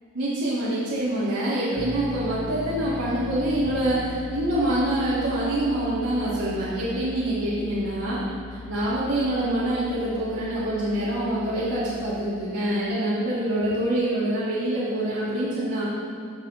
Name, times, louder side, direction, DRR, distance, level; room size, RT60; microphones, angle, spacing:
voice 1, 0.1-8.3 8.7-15.8, right 1 dB, 90° right, -10 dB, 1.5 m, -25 dB
sound 1, 1.8-12.2, left 3 dB, 55° left, 0.6 m, -39 dB
13.5 x 5.0 x 3.0 m, 2.5 s
head